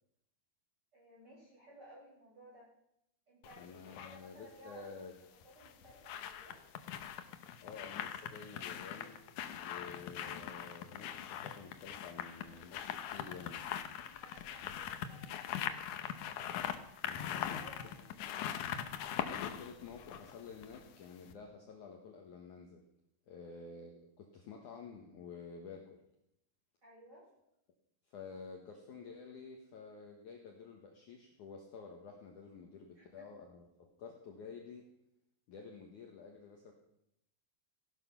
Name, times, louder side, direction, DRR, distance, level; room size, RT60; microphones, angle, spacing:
voice 1, 0.9-2.7 3.3-4.9 5.4-6.6 14.0-15.7 17.1-18.7 23.5-23.6 26.8-27.2 32.9-33.3, equal, 25° right, -5 dB, 7.8 m, -58 dB
sound 1, 3.4-4.2 5.4-20.9 21.3-21.4, left 10 dB, 80° left, 1.7 m, -42 dB
voice 2, 3.6-5.1 7.6-9.2 9.5-13.6 17.0-17.9 19.4-22.8 23.3-26.0 28.1-34.9 35.5-36.7, left 5 dB, 60° left, 1 dB, 2.5 m, -51 dB
17.0 x 12.0 x 5.8 m, 0.79 s
omnidirectional pair, 4.8 m